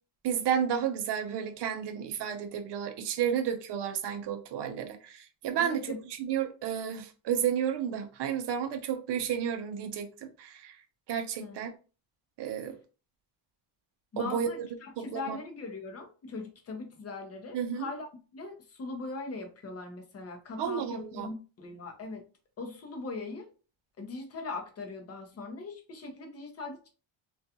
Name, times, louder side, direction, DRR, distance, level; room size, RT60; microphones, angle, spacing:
voice 1, 0.2-5.9 6.2-10.8 11.1-11.7 12.4-12.8 14.2-14.7 15.0-15.4 17.5-17.9 20.6-21.3, right 8 dB, 60° right, 7 dB, 0.6 m, -32 dB
voice 2, 5.6-6.0 11.4-11.6 14.1-18.1 18.3-22.2 22.6-23.5 24.0-26.9, left 3 dB, 30° left, 4 dB, 0.6 m, -40 dB
2.4 x 2.3 x 2.7 m, 0.35 s
cardioid pair, 145°, 49 cm